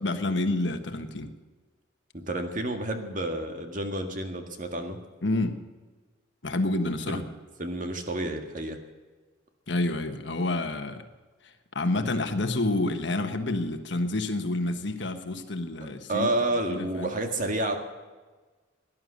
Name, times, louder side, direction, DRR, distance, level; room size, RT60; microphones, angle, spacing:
voice 1, 0.0-1.3 5.2-5.6 6.4-7.3 9.7-11.0 11.4-16.3 16.7-17.1, left 2 dB, 65° left, 7 dB, 1.4 m, -28 dB
voice 2, 2.1-5.0 7.1-7.2 7.6-8.8 16.1-17.8, right 1 dB, 45° right, 5 dB, 1.9 m, -30 dB
18.0 x 11.0 x 6.6 m, 1.3 s
head